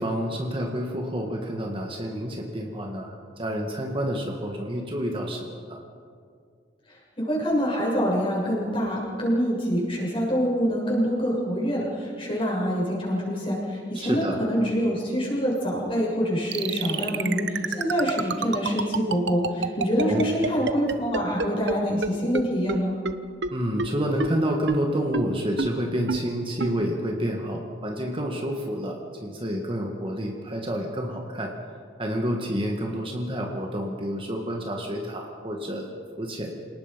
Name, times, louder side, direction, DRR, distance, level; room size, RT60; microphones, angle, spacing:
voice 1, 0.0-5.8 14.0-14.4 20.0-20.3 23.5-31.5 32.0-35.9 36.2-36.5, equal, 30° right, 1 dB, 2.0 m, -29 dB
voice 2, 6.9-22.9, equal, 30° left, -3 dB, 7.0 m, -25 dB
sound 1, 16.5-21.7 22.0-22.1 22.3-22.4 22.7-22.8 23.1-23.2 23.4-23.5 23.8-23.9 24.2-24.3 24.7-24.8 25.1-25.2 25.6-25.7 26.1-26.2 26.6-26.7, right 4 dB, 70° right, 1.0 m, -26 dB
28.5 x 19.0 x 5.4 m, 2.2 s
head